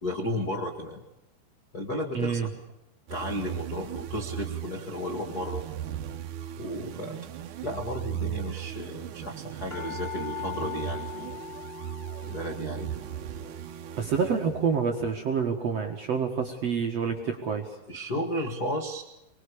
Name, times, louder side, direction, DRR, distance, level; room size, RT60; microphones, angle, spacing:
voice 1, 0.0-1.1 1.7-2.5 3.1-5.6 6.6-7.2 7.6-11.4 11.7-11.9 12.2-12.9 17.9-19.0, left 1 dB, 60° left, 3 dB, 0.9 m, -33 dB
voice 2, 2.1-2.5 14.0-17.7, right 6 dB, 55° right, 2 dB, 1.8 m, -27 dB
sound 1, 3.1-14.8, right 10 dB, 80° right, 1.7 m, -37 dB
sound 2, 6.5-6.9 7.7-7.8 8.0-8.1 8.3-16.0 16.4-16.5, left 6 dB, 15° left, 3.9 m, -42 dB
25.0 x 21.5 x 7.0 m, 0.92 s
omnidirectional pair, 5.3 m